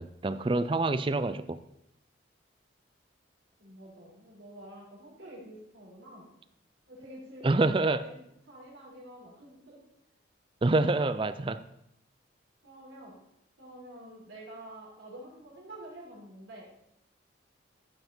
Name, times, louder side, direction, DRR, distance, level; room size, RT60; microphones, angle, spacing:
voice 1, 0.0-1.6 7.4-8.0 10.6-11.6, right 2 dB, 25° right, 13 dB, 0.4 m, -26 dB
voice 2, 3.6-6.3 6.9-9.8 12.6-13.1 13.6-16.7, right 1 dB, 85° right, -4 dB, 4.8 m, -48 dB
15.0 x 5.6 x 4.4 m, 0.78 s
head